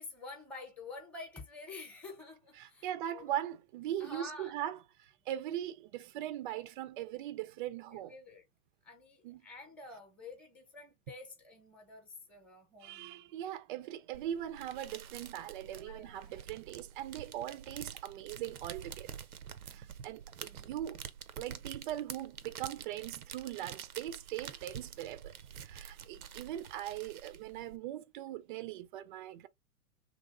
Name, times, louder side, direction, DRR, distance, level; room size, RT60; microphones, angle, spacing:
voice 1, 0.0-3.4 4.0-4.5 7.9-8.4 8.8-13.3 14.9-15.0 15.6-16.4 19.7-20.1, left 3 dB, 5° left, 0.8 m, -49 dB
voice 2, 2.6-8.1 9.2-9.4 12.8-19.1 19.7-21.0 21.4-25.3 25.6-29.5, right 12 dB, 40° right, 0.4 m, -40 dB
sound 1, 14.1-27.8, right 8 dB, 85° right, 0.6 m, -48 dB
3.0 x 2.7 x 2.4 m
hypercardioid pair, 105°, 43 cm